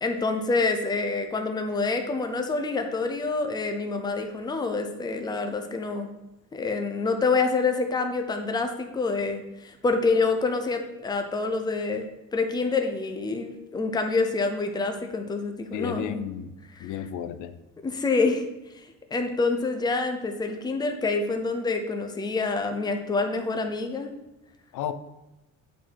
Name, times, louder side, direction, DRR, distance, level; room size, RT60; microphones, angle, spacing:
voice 1, 0.0-6.1 6.5-16.2 16.7-17.0 17.8-18.4 19.1-24.1, left 3 dB, 15° left, 5 dB, 0.6 m, -27 dB
voice 2, 15.7-16.5 16.8-17.5 24.7-24.9, left 10 dB, 75° left, 11 dB, 0.6 m, -32 dB
8.2 x 4.2 x 4.6 m, 0.97 s
cardioid pair, 160°, 31 cm